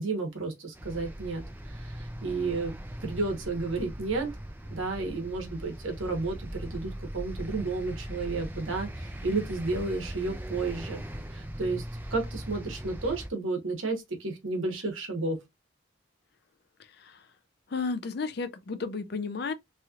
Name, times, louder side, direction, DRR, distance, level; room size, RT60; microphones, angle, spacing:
voice 1, 0.0-2.7 3.0-4.3 4.7-11.0 11.3-11.8 12.1-15.4, right 3 dB, 80° right, 1.1 m, -32 dB
sound 1, 0.7-13.3, equal, 10° right, 0.4 m, -39 dB
voice 2, 17.7-19.5, left 4 dB, 55° left, 0.4 m, -33 dB
3.0 x 2.9 x 2.4 m
head